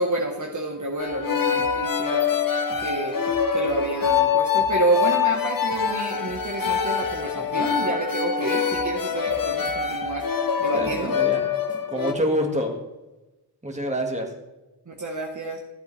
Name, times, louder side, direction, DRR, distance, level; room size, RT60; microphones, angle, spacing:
voice 1, 0.0-2.3 2.8-3.2 3.5-10.3 10.6-11.1 14.9-15.6, right 2 dB, 45° right, -1 dB, 1.3 m, -29 dB
sound 1, 1.0-12.1, left 7 dB, 55° left, 0.8 m, -24 dB
sound 2, 1.1-1.2 1.6-1.8 2.3-2.4 2.7-4.2 4.6-4.8 5.3-5.4 5.7-7.2 7.6-7.8 8.3-8.4 8.7-10.3 10.7-11.0 11.3-11.4 11.7-11.8 12.1-12.2, equal, 20° left, 1.5 m, -46 dB
voice 2, 10.7-11.4 11.9-12.7 13.6-14.3, equal, 15° right, 1 dB, 1.8 m, -27 dB
14.0 x 8.1 x 3.3 m, 1.0 s
wide cardioid pair, 65°, 41 cm